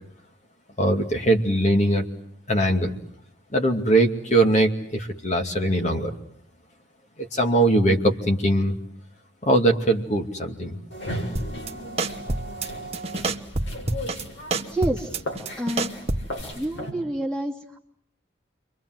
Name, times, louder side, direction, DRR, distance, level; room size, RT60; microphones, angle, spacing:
voice 1, 0.8-2.0 2.5-3.0 3.5-6.1 7.2-8.7 9.4-10.8, right 1 dB, 35° left, 3 dB, 2.5 m, -21 dB
sound 1, 10.9-16.9, equal, 75° left, 6.5 m, -36 dB
sound 2, 11.4-11.7 12.0-12.7 12.9-14.2 14.5-16.4, right 2 dB, 30° right, 1.3 m, -27 dB
voice 2, 14.6-15.2 15.6-16.1 16.5-17.8, right 1 dB, 5° left, 1 dB, 2.9 m, -29 dB
29.5 x 24.0 x 7.8 m, 0.66 s
head